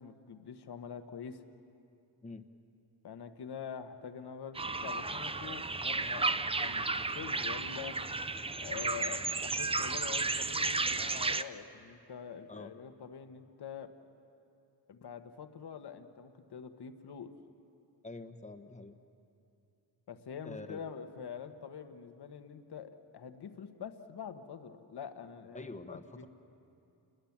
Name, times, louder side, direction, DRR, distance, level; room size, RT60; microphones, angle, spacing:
voice 1, 0.0-1.4 3.0-6.9 7.1-8.0 8.6-13.9 14.9-17.3 20.1-26.3, left 7 dB, 65° left, 7 dB, 1.5 m, -45 dB
sound 1, 4.5-11.4, right 3 dB, 15° right, 0.5 m, -33 dB
voice 2, 18.0-19.0 20.4-20.8 25.5-26.3, left 2 dB, 15° left, 8 dB, 1.2 m, -46 dB
29.5 x 21.5 x 7.4 m, 2.7 s
wide cardioid pair, 120°, 42 cm